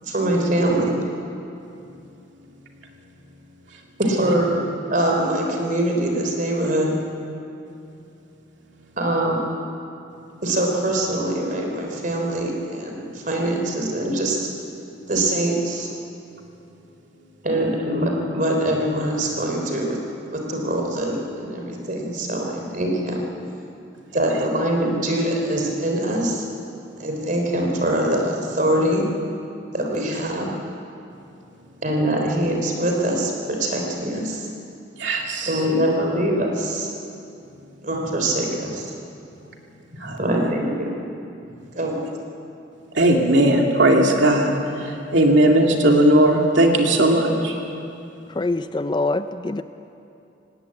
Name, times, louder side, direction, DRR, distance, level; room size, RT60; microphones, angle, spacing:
voice 1, 0.0-0.9 4.0-4.6 4.9-7.0 9.0-9.4 10.4-14.4 15.1-15.9 17.4-20.0 20.3-23.3 24.1-26.5 27.0-29.1 29.7-30.5 31.8-34.5 35.4-36.9 37.8-38.9 40.0-41.0 41.7-42.1, right 1 dB, 45° right, 1 dB, 3.5 m, -23 dB
voice 2, 35.0-35.5 40.0-40.5 42.9-44.6 45.1-47.5, right 1 dB, 70° right, 1 dB, 2.5 m, -17 dB
voice 3, 48.4-49.6, left 2 dB, 25° left, 10 dB, 0.4 m, -24 dB
18.5 x 18.0 x 8.5 m, 2.7 s
head